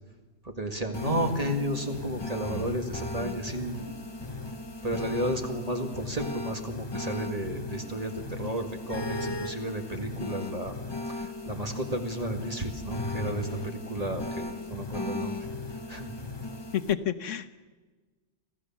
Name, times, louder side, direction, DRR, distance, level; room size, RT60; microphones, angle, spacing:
voice 1, 0.4-3.9 4.8-10.7 11.1-15.4 15.9-16.1, right 1 dB, 30° right, 4 dB, 1.9 m, -33 dB
sound 1, 0.9-16.9, left 2 dB, 25° left, 0.8 m, -36 dB
voice 2, 16.7-17.6, left 10 dB, 70° left, 12 dB, 1.1 m, -29 dB
25.5 x 15.0 x 7.3 m, 1.3 s
omnidirectional pair, 1.4 m